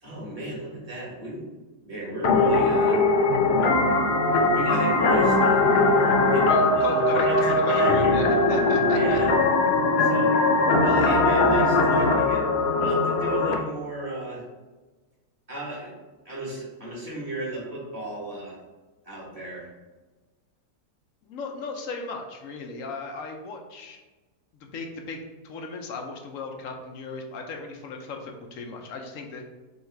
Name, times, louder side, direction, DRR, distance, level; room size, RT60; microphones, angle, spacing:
voice 1, 0.0-1.5 1.8-3.0 4.5-8.3 8.9-9.3 10.0-10.4 10.8-12.5 12.8-14.4 15.5-16.0 16.2-18.6 19.0-19.7, right 1 dB, 25° right, -5 dB, 1.3 m, -34 dB
sound 1, 2.2-13.5, left 2 dB, 80° left, 0.5 m, -20 dB
voice 2, 6.5-9.2 21.2-24.0 24.6-29.4, left 4 dB, 65° left, 3 dB, 0.9 m, -36 dB
3.9 x 3.1 x 4.4 m, 1.2 s
omnidirectional pair, 1.8 m